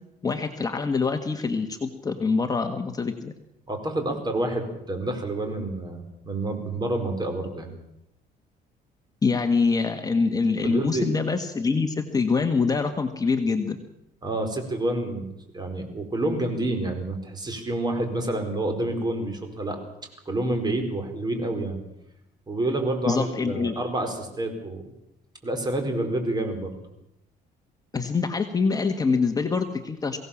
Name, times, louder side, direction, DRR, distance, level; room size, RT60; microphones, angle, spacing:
voice 1, 0.2-3.3 9.2-13.8 23.1-23.8 27.9-30.2, left 4 dB, 20° left, 5 dB, 1.5 m, -25 dB
voice 2, 3.7-7.7 10.6-11.1 14.2-15.3 15.5-19.8 20.3-21.8 22.5-24.8 25.4-26.7, right 1 dB, 25° right, 5 dB, 4.6 m, -28 dB
22.5 x 17.0 x 7.2 m, 0.84 s
cardioid pair, 110°, 17 cm